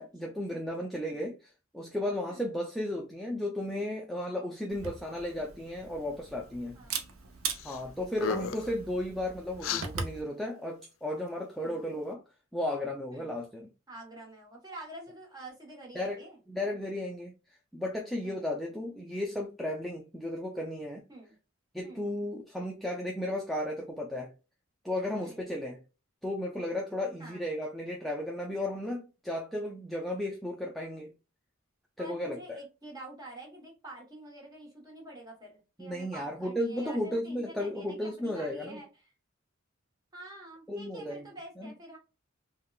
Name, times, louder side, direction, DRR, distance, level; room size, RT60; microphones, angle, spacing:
voice 1, 0.0-6.8 7.6-12.2 12.5-13.7 15.9-16.2 16.5-17.3 17.7-21.0 21.7-24.3 24.8-25.8 26.2-31.1 32.0-32.6 35.8-38.8 40.7-41.3 41.6-41.7, left 1 dB, ahead, 0.3 m, -34 dB
Camera, 4.7-10.2, right 5 dB, 80° right, 0.6 m, -40 dB
sound 1, 7.5-7.8 8.1-8.7 9.6-9.9, left 6 dB, 75° left, 0.4 m, -33 dB
voice 2, 8.3-8.8 11.6-12.0 13.1-13.3 13.9-16.4 18.2-18.7 21.1-21.4 21.8-22.1 25.2-25.5 27.2-27.4 32.0-39.1 40.1-42.0, right 1 dB, 20° right, 1.0 m, -48 dB
3.7 x 2.2 x 2.3 m
head